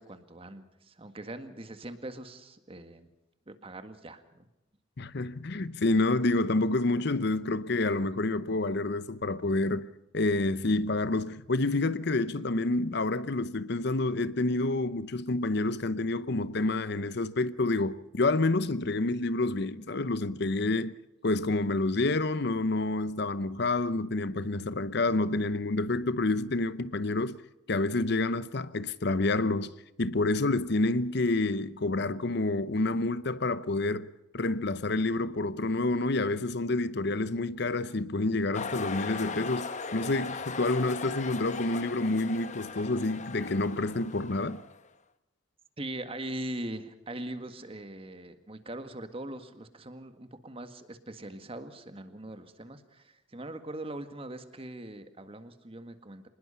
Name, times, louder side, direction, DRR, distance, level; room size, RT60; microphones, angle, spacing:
voice 1, 0.0-3.1 3.5-4.5 45.8-56.3, right 1 dB, 30° right, 1.8 m, -41 dB
voice 2, 5.0-9.9 10.1-21.0 21.2-27.4 27.7-34.1 34.3-44.6, left 2 dB, 60° left, 0.8 m, -28 dB
sound 1, 38.5-44.9, left 4 dB, 40° left, 1.0 m, -38 dB
25.5 x 20.5 x 5.7 m
head